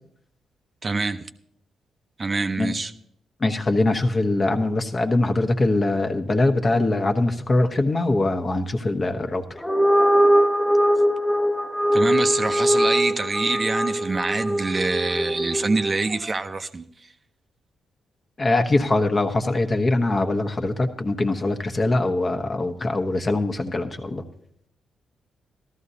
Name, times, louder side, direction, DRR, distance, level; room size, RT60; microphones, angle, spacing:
voice 1, 0.8-1.2 2.2-2.9 11.9-16.8, right 3 dB, 40° right, 0.6 m, -25 dB
voice 2, 3.4-9.4 18.4-24.2, left 2 dB, 40° left, 1.2 m, -22 dB
sound 1, 9.6-16.1, equal, 10° left, 0.9 m, -21 dB
14.0 x 13.0 x 2.8 m
hypercardioid pair, 45°, 0 cm